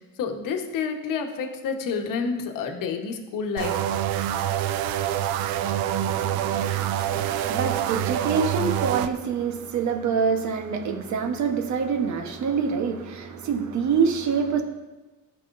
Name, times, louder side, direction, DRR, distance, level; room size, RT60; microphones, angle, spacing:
voice 1, 0.0-3.8, left 5 dB, 60° left, 3 dB, 1.3 m, -29 dB
sound 1, 3.6-9.1, right 11 dB, 75° right, 0.5 m, -26 dB
voice 2, 6.0-14.6, right 6 dB, 50° right, 5 dB, 1.2 m, -26 dB
15.0 x 5.9 x 2.6 m, 1.2 s
cardioid pair, 115°, 36 cm